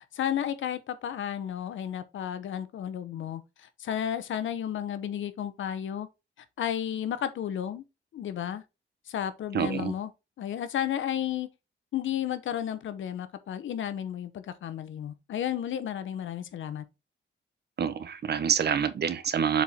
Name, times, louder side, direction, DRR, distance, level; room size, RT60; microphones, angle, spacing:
voice 1, 0.1-6.1 6.6-7.8 8.1-8.6 9.1-10.1 10.4-11.5 11.9-16.8, left 10 dB, 85° left, 0.9 m, -32 dB
voice 2, 9.5-9.9 17.8-19.6, right 7 dB, 55° right, 0.9 m, -27 dB
7.3 x 4.4 x 3.6 m
cardioid pair, 100°, 20 cm